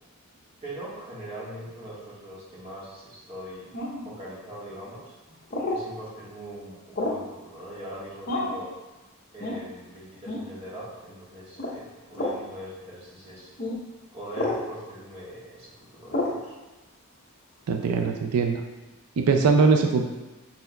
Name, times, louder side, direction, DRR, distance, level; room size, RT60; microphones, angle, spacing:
voice 1, 0.6-3.7 4.0-5.1 5.6-8.7 9.3-13.5 14.1-16.5, equal, 25° right, -8 dB, 1.4 m, -41 dB
sound 1, 3.7-4.1 5.5-5.8 7.0-7.3 8.3-8.6 9.4-9.6 10.3-10.5 11.6-11.8 12.1-12.4 13.6-13.8 14.3-14.6 16.1-16.4, left 2 dB, 40° left, 0.7 m, -29 dB
voice 2, 17.7-18.6 19.2-20.1, right 4 dB, 90° right, 4 dB, 0.4 m, -21 dB
5.6 x 4.3 x 2.2 m, 1.1 s
head